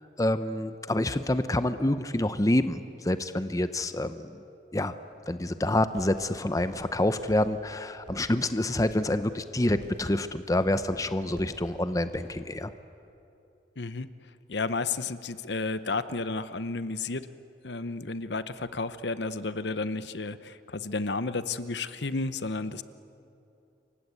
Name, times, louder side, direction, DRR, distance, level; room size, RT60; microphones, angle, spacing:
voice 1, 0.0-4.4 4.7-4.9 5.3-12.7, left 1 dB, 20° left, 11 dB, 0.7 m, -27 dB
sound 1, 5.1-12.4, right 1 dB, 70° right, 7.4 m, -52 dB
voice 2, 13.8-14.1 14.5-17.3 17.6-22.8, left 3 dB, 65° left, 13 dB, 0.9 m, -32 dB
28.0 x 24.5 x 8.4 m, 2.7 s
head